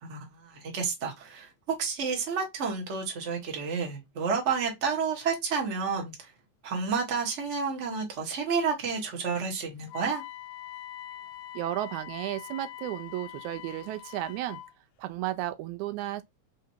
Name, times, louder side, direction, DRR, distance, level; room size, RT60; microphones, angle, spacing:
voice 1, 0.0-6.3 6.6-10.2, right 5 dB, 35° right, 1.3 m, -30 dB
Wind instrument woodwind instrument, 9.9-14.7, left 12 dB, 80° left, 1.8 m, -43 dB
voice 2, 11.5-14.6 15.0-16.2, right 14 dB, 85° right, 2.0 m, -33 dB
4.5 x 3.8 x 2.7 m
omnidirectional pair, 3.4 m